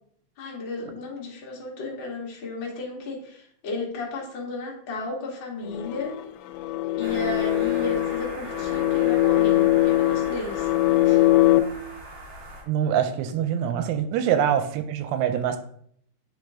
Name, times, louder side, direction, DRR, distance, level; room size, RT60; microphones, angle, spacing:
voice 1, 0.4-6.1 7.0-10.7 11.0-11.2, left 2 dB, 65° left, -3 dB, 1.1 m, -33 dB
sound 1, 5.6-11.6, left 16 dB, 85° left, 2.7 m, -22 dB
sound 2, 7.0-12.6, right 2 dB, 40° right, 1.9 m, -40 dB
voice 2, 12.7-15.6, right 9 dB, 90° right, 8 dB, 2.8 m, -24 dB
9.0 x 5.0 x 3.6 m, 0.66 s
omnidirectional pair, 4.9 m